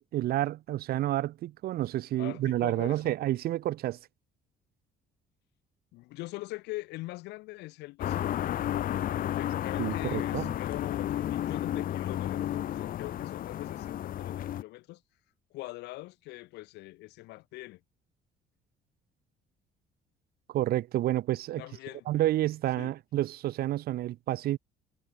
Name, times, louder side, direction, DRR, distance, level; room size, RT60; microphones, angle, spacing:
voice 1, 0.0-4.0 9.8-10.5 20.5-21.6 22.1-24.6, right 14 dB, 65° right, 0.9 m, -29 dB
voice 2, 2.2-3.1 5.9-8.2 9.2-15.0 15.5-17.8 21.6-22.1 22.8-22.9, left 20 dB, 90° left, 4.9 m, -42 dB
sound 1, 8.0-14.6, left 12 dB, 55° left, 1.1 m, -32 dB
cardioid pair, 110°, 17 cm